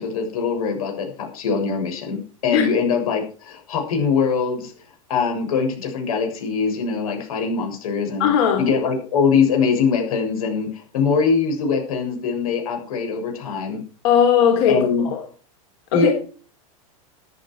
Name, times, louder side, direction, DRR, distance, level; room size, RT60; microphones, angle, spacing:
voice 1, 0.0-4.7 5.1-8.3 8.6-13.8 14.7-15.1 15.9-16.1, left 5 dB, 85° left, 3 dB, 7.0 m, -22 dB
voice 2, 8.2-8.6 14.0-14.8 15.1-15.2 15.9-16.1, left 8 dB, 50° left, 2 dB, 3.4 m, -17 dB
14.0 x 10.5 x 4.8 m, 0.40 s
supercardioid pair, 175°, 18 cm